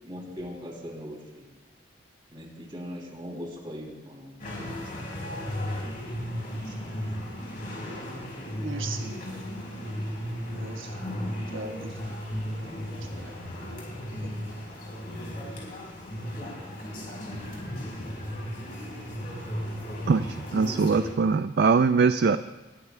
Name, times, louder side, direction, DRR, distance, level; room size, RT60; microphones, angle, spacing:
voice 1, 0.0-1.4 2.3-5.8 6.6-7.1, equal, 25° right, -2 dB, 2.8 m, -41 dB
sound 1, 4.4-21.1, equal, 45° left, 4.1 m, -35 dB
voice 2, 8.5-9.6 10.5-11.0 11.5-12.2 13.0-13.4 14.2-14.5, right 3 dB, 85° right, 3 dB, 1.3 m, -40 dB
voice 3, 20.1-22.4, right 5 dB, 55° right, 11 dB, 0.3 m, -22 dB
20.0 x 13.5 x 2.2 m, 1.3 s
head